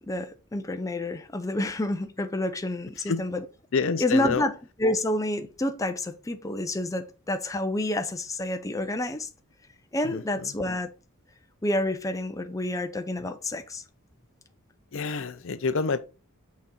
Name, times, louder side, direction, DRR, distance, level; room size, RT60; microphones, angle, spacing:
voice 1, 0.1-3.5 4.0-9.3 9.9-10.9 11.6-13.8, left 1 dB, 15° left, 0.5 m, -29 dB
voice 2, 3.7-4.4 10.0-10.2 14.9-16.0, left 4 dB, 65° left, 0.5 m, -27 dB
6.2 x 4.2 x 3.7 m
head